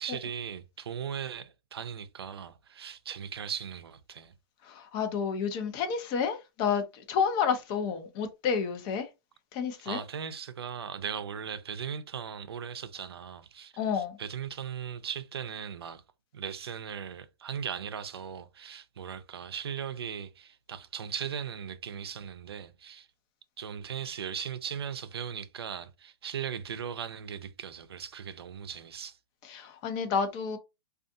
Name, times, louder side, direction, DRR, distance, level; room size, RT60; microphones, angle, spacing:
voice 1, 0.0-4.3 9.9-16.0 16.3-23.1 23.6-29.2, right 8 dB, 90° right, 0.5 m, -38 dB
voice 2, 4.6-9.1 9.5-10.0 13.8-14.2 29.4-30.6, left 6 dB, 35° left, 0.6 m, -30 dB
2.5 x 2.4 x 2.5 m
hypercardioid pair, 135°, 13 cm